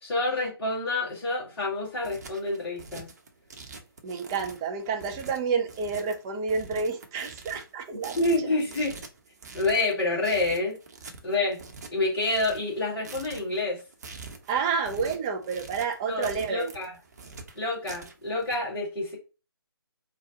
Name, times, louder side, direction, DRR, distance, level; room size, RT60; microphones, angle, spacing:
voice 1, 0.0-3.1 8.2-9.0 9.5-10.8 11.2-11.6 11.9-13.8 16.1-16.9 17.5-19.2, left 2 dB, 15° left, 1.9 m, -28 dB
sound 1, 1.8-18.6, right 4 dB, 40° right, 0.8 m, -45 dB
voice 2, 4.0-8.2 14.5-16.7, right 5 dB, 10° right, 0.3 m, -29 dB
4.4 x 2.2 x 3.8 m
figure-of-eight pair, 145°, 13 cm